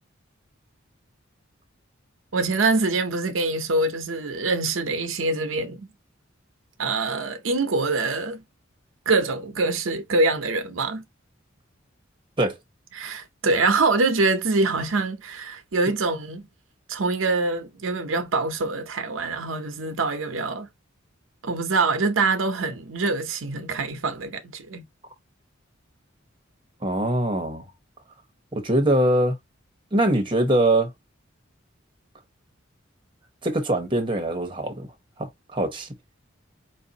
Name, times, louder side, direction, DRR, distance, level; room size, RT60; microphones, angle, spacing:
voice 1, 2.3-5.9 6.8-8.4 9.1-11.0 12.9-16.5 16.9-20.7 21.4-24.9, right 3 dB, 75° right, 0.7 m, -24 dB
voice 2, 26.8-27.6 28.5-29.4 29.9-30.9 33.4-34.9 35.2-35.9, right 1 dB, 25° right, 1.0 m, -23 dB
4.7 x 2.6 x 2.8 m
head